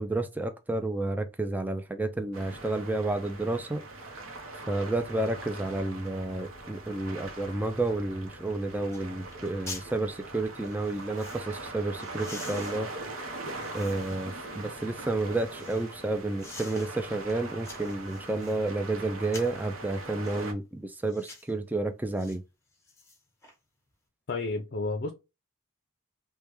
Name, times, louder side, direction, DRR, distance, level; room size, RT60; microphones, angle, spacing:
voice 1, 0.0-4.2 4.7-13.3 13.7-22.4, right 2 dB, 10° right, 0.3 m, -31 dB
sound 1, 2.3-20.5, right 2 dB, 85° right, 0.7 m, -41 dB
sound 2, 8.4-8.5 8.9-9.0 9.3-9.9 10.6-11.4 12.0-14.3 14.8-15.9 16.4-16.9 17.3-18.6 19.2-19.6 20.2-20.5 21.1-21.5 22.2-22.4 22.7-23.5 23.9-24.0, left 3 dB, 15° left, 1.0 m, -47 dB
voice 2, 24.3-25.1, left 3 dB, 50° left, 0.5 m, -31 dB
3.3 x 2.2 x 3.0 m
head